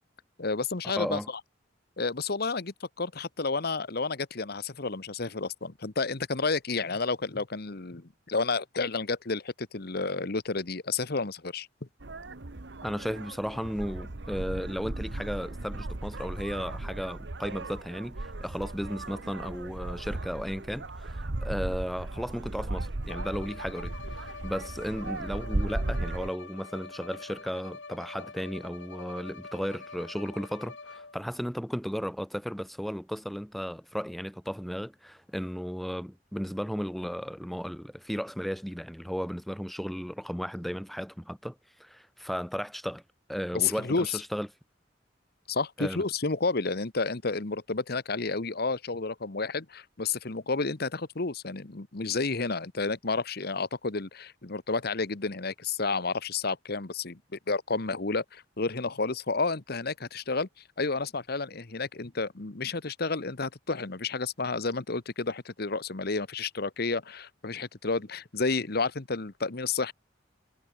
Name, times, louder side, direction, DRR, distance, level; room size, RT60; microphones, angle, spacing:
voice 1, 0.4-1.2 2.0-11.7 43.5-44.2 45.5-60.5 60.8-69.9, left 4 dB, 55° left, 1.2 m, -31 dB
voice 2, 0.9-1.3 12.8-43.0 43.3-44.5 45.8-46.0, equal, ahead, 0.9 m, -35 dB
sound 1, 12.0-26.3, right 2 dB, 65° right, 1.3 m, -36 dB
Bowed string instrument, 23.1-31.3, left 4 dB, 75° left, 3.7 m, -46 dB
head